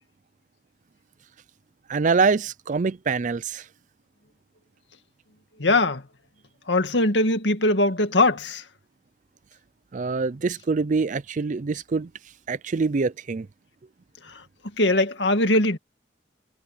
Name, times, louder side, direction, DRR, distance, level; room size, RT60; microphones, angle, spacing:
voice 1, 1.9-3.6 9.9-12.1 12.5-13.5, right 4 dB, 45° right, 0.5 m, -24 dB
voice 2, 5.6-6.0 6.7-8.6 14.2-14.4 14.8-15.8, left 2 dB, 80° left, 2.1 m, -21 dB
head